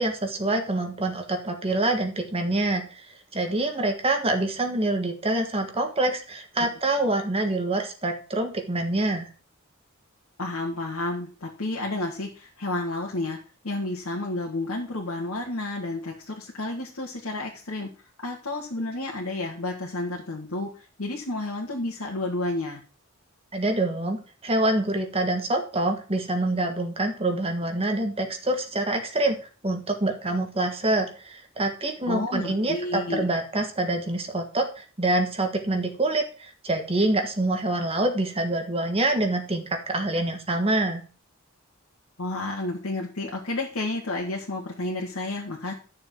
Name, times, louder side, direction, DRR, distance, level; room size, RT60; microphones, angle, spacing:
voice 1, 0.0-9.3 23.5-41.0, right 2 dB, 30° right, 4 dB, 1.5 m, -26 dB
voice 2, 10.4-13.4 13.6-17.9 18.2-20.7 21.0-22.8 32.1-33.2 42.2-45.7, left 2 dB, 80° left, -2 dB, 1.8 m, -31 dB
11.5 x 6.7 x 4.5 m, 0.37 s
head